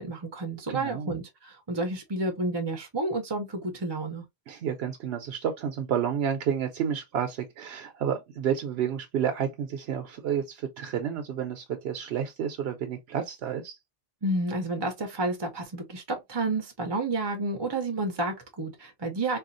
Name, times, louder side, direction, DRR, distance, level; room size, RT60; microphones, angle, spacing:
voice 1, 0.0-4.2 14.2-19.4, right 2 dB, 35° right, 0.5 m, -30 dB
voice 2, 0.7-1.2 4.5-13.8, right 8 dB, 80° right, 0.8 m, -30 dB
4.2 x 2.3 x 2.5 m
omnidirectional pair, 1.1 m